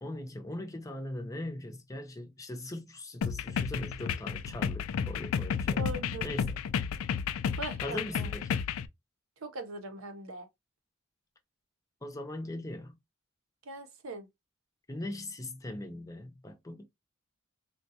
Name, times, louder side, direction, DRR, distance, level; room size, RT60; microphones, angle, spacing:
voice 1, 0.0-5.9 6.2-6.6 7.8-8.6 12.0-13.0 14.9-16.9, left 1 dB, 15° left, 0.5 m, -40 dB
sound 1, 3.2-8.9, left 7 dB, 85° left, 0.3 m, -32 dB
voice 2, 5.8-6.3 7.6-8.3 9.4-10.5 13.7-14.3, right 2 dB, 75° right, 0.7 m, -40 dB
3.6 x 2.2 x 2.7 m
head